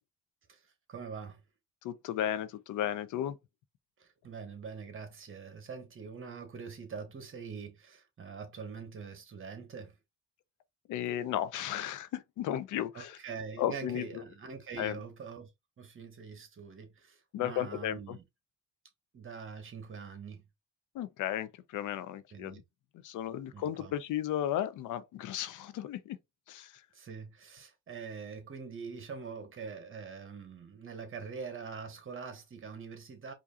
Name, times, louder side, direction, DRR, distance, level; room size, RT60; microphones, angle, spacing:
voice 1, 0.9-1.4 4.0-10.0 12.9-15.5 15.8-18.2 19.1-20.4 22.3-22.6 23.5-23.9 26.9-33.3, right 5 dB, 45° right, 1.4 m, -44 dB
voice 2, 1.8-3.4 10.9-13.2 13.6-14.2 14.8-15.0 17.3-18.2 20.9-22.6 23.0-26.2 26.5-26.8, left 11 dB, 85° left, 0.6 m, -34 dB
4.9 x 2.7 x 2.4 m
cardioid pair, 90°, 30 cm